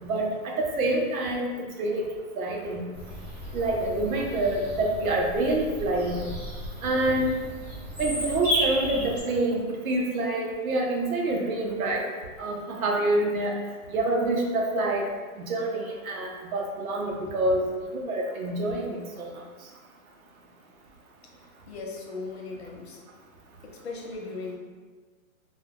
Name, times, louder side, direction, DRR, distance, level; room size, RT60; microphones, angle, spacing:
voice 1, 0.0-1.4 1.8-2.1 2.3-2.8 3.5-6.4 6.8-7.3 8.0-12.0 12.4-13.5 13.9-15.1 15.4-17.6 17.9-19.3, right 2 dB, 75° right, 0 dB, 0.6 m, -27 dB
Bird vocalization bird call bird song, 2.9-9.2, equal, 30° right, 1.0 m, -33 dB
voice 2, 21.7-23.0 23.6-24.6, left 3 dB, 50° left, 0 dB, 0.5 m, -37 dB
2.2 x 2.2 x 3.2 m, 1.4 s
hypercardioid pair, 175°, 43 cm